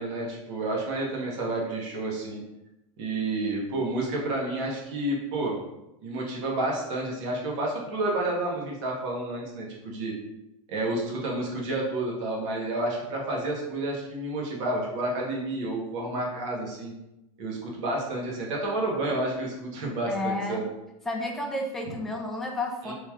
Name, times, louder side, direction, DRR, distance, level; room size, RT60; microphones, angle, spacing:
voice 1, 0.0-2.4 3.0-5.6 6.0-10.1 10.7-16.9 17.4-20.6 21.8-21.9 22.8-22.9, right 2 dB, 60° right, -2 dB, 1.3 m, -30 dB
voice 2, 20.1-20.6 21.1-22.9, left 2 dB, ahead, 0 dB, 0.4 m, -31 dB
3.3 x 2.9 x 3.6 m, 0.90 s
supercardioid pair, 145°, 18 cm